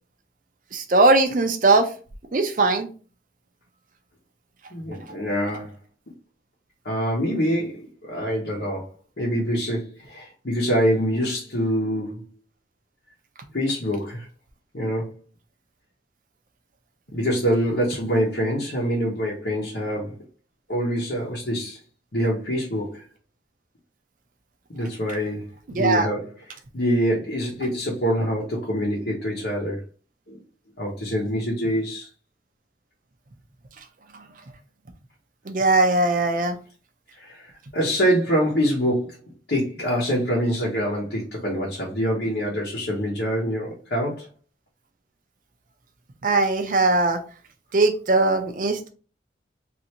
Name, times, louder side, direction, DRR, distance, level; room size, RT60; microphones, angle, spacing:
voice 1, 0.7-1.9 2.3-2.9 25.8-26.1 35.5-36.6 46.2-47.2 47.7-48.9, right 2 dB, 45° right, 6 dB, 0.5 m, -20 dB
voice 2, 4.7-5.7 6.8-8.9 9.2-12.2 13.5-14.3 14.7-15.2 17.1-20.1 20.7-21.8 22.1-23.1 24.7-25.4 25.7-26.3 26.7-29.8 30.3-30.4 30.8-32.1 37.1-39.2 39.5-44.3, equal, 70° left, -4 dB, 0.9 m, -25 dB
3.2 x 2.6 x 2.9 m, 0.37 s
head